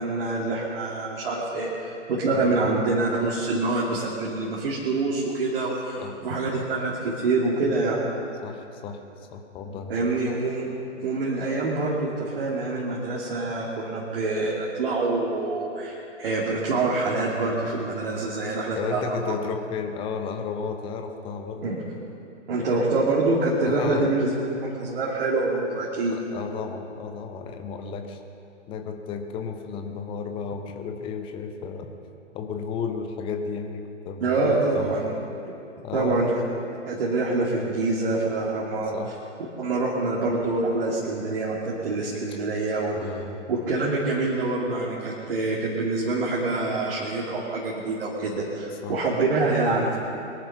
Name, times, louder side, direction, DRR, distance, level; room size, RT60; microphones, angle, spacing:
voice 1, 0.0-8.0 9.9-10.7 11.0-19.3 21.6-21.8 22.5-24.3 24.6-26.2 34.2-35.1 35.9-36.3 36.9-38.9 39.6-42.9 43.5-50.0, right 3 dB, 50° right, -5 dB, 2.6 m, -26 dB
voice 2, 2.3-2.7 6.0-6.1 8.4-9.0 9.3-10.1 18.7-21.8 23.6-24.1 26.1-28.2 28.7-31.9 32.3-34.9 35.8-36.2 38.9-39.1 42.9-43.4 48.7-49.0, left 6 dB, 15° left, 5 dB, 0.8 m, -33 dB
22.5 x 10.5 x 5.9 m, 2.7 s
figure-of-eight pair, 125°, 36 cm